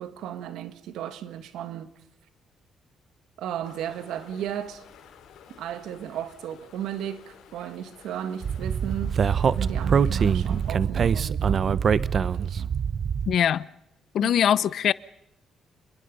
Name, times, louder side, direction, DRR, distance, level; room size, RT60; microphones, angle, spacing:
voice 1, 0.0-1.9 3.4-4.8 5.6-11.9 12.1-12.7 14.2-14.3, right 10 dB, 85° right, 1.8 m, -35 dB
sound 1, 3.6-10.8, left 8 dB, 90° left, 5.2 m, -52 dB
Speech, 8.4-13.3, right 7 dB, 50° right, 0.7 m, -24 dB
voice 2, 13.3-13.7 14.1-14.9, left 9 dB, 65° left, 0.7 m, -22 dB
27.5 x 22.0 x 5.5 m
cardioid pair, 90°, 0 cm